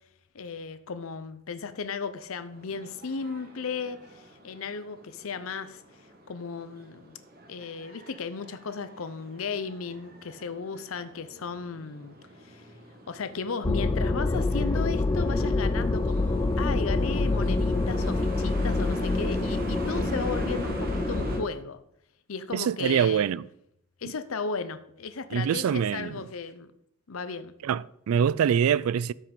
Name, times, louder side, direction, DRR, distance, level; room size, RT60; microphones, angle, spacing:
voice 1, 0.3-5.8 6.3-7.2 7.5-12.2 12.4-12.7 13.1-21.8 22.3-23.2 24.0-26.7 27.1-27.5, left 5 dB, 75° left, 0.6 m, -35 dB
sound 1, 2.5-21.4, right 1 dB, 45° right, 1.8 m, -42 dB
sound 2, 13.6-21.5, left 2 dB, 15° left, 0.3 m, -26 dB
voice 2, 22.5-23.5 25.3-26.2 27.6-29.1, right 8 dB, 85° right, 0.3 m, -24 dB
13.0 x 5.6 x 5.2 m
head